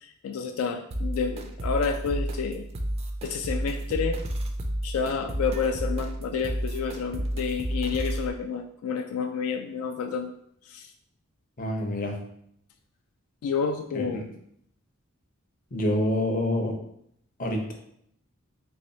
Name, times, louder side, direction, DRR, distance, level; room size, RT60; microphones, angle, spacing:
voice 1, 0.0-2.6 3.2-4.2 4.8-10.3 10.7-10.9 13.4-14.3, left 5 dB, 85° left, 7 dB, 0.3 m, -29 dB
sound 1, 0.9-8.3, right 1 dB, 30° right, 0.3 m, -31 dB
voice 2, 11.6-12.2 13.9-14.3 15.7-16.7 17.4-17.7, left 1 dB, 40° left, 2 dB, 0.6 m, -27 dB
3.4 x 3.1 x 2.7 m, 0.71 s
head